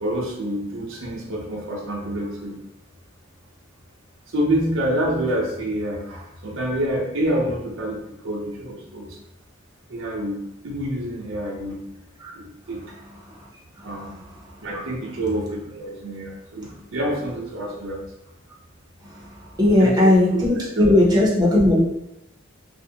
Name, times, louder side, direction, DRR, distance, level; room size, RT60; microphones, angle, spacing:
voice 1, 0.0-2.6 4.3-9.1 9.9-10.4 10.6-11.8 12.3-12.8 13.8-14.1 14.6-18.0 19.6-21.0, right 1 dB, 85° right, -2 dB, 0.6 m, -27 dB
voice 2, 19.6-21.8, left 1 dB, 20° right, -5 dB, 0.6 m, -17 dB
2.5 x 2.0 x 2.7 m, 0.84 s
head